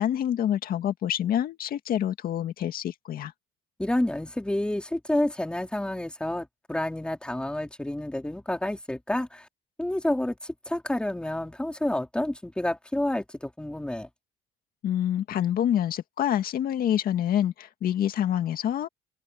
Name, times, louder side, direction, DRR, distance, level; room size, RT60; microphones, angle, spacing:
voice 1, 0.0-3.3 14.8-18.9, left 10 dB, 60° left, 2.0 m, -27 dB
voice 2, 3.8-9.5 9.8-14.1, left 1 dB, 5° left, 2.8 m, -29 dB
cardioid pair, 110°, 17 cm